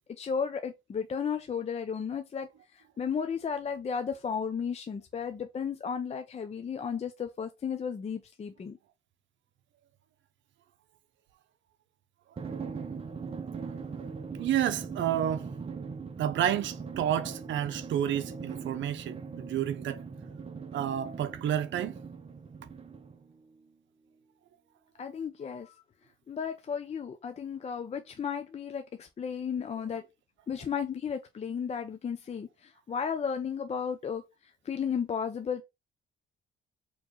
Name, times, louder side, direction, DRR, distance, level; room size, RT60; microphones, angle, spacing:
voice 1, 0.2-2.5 3.0-8.8 25.0-25.7 26.3-30.0 30.5-34.2 34.7-35.6, left 7 dB, 35° left, 0.5 m, -34 dB
Drum, 12.4-23.4, right 5 dB, 30° right, 0.7 m, -40 dB
voice 2, 14.4-15.4 16.2-20.0 20.7-21.9, right 10 dB, 70° right, 0.6 m, -30 dB
4.3 x 3.0 x 3.0 m
cardioid pair, 90°, 20 cm